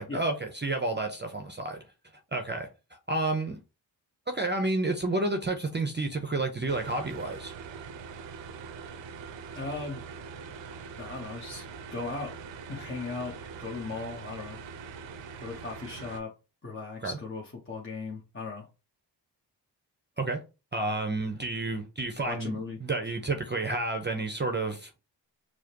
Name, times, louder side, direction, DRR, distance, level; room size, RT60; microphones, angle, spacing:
voice 1, 0.1-1.8 2.3-2.7 3.1-3.6 4.3-7.5 17.0-17.2 20.2-20.4 20.7-24.9, right 2 dB, 25° right, 0.7 m, -30 dB
sound 1, 6.7-16.2, right 5 dB, 80° right, 0.6 m, -43 dB
voice 2, 9.5-10.0 11.0-11.6 11.9-12.3 12.7-14.6 15.4-16.3 16.6-18.7 22.2-22.8, left 3 dB, 25° left, 1.1 m, -37 dB
4.8 x 2.1 x 2.9 m
cardioid pair, 50°, 44 cm